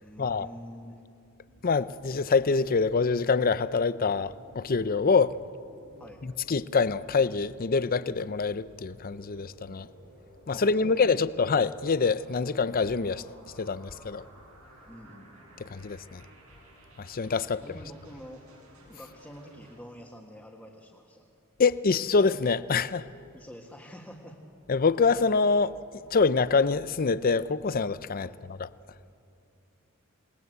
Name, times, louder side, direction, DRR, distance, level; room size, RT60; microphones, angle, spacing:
voice 1, 0.0-1.0 6.0-6.2 10.5-11.1 14.9-15.7 17.5-18.4 18.9-21.2 23.3-24.4 28.2-28.4, equal, 5° left, 1.8 m, -47 dB
sound 1, 1.5-19.8, right 1 dB, 85° right, 7.5 m, -55 dB
voice 2, 1.6-5.3 6.2-9.9 10.5-13.2 13.6-14.2 15.7-16.2 17.0-17.6 21.6-23.1 24.7-25.8 26.1-28.3 28.6-28.7, left 4 dB, 40° left, 0.6 m, -25 dB
28.0 x 20.5 x 8.1 m
head